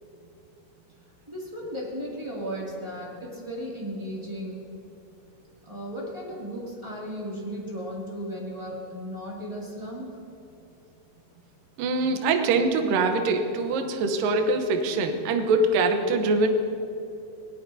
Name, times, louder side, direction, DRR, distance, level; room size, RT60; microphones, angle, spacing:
voice 1, 1.3-4.7 5.6-10.0, equal, 15° right, -5 dB, 1.1 m, -35 dB
voice 2, 11.8-16.5, right 3 dB, 70° right, 5 dB, 2.2 m, -23 dB
20.0 x 19.0 x 2.8 m, 2.8 s
omnidirectional pair, 5.0 m